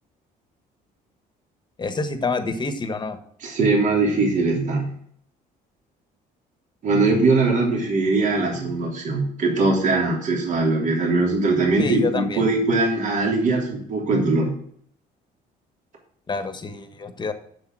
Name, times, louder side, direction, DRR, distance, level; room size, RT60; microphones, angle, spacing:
voice 1, 1.8-3.2 11.8-12.4 16.3-17.3, left 3 dB, 25° left, 9 dB, 1.4 m, -27 dB
voice 2, 3.4-4.9 6.8-14.5, right 3 dB, 50° right, -1 dB, 3.4 m, -21 dB
7.6 x 7.2 x 6.2 m, 0.64 s
cardioid pair, 110°, 17 cm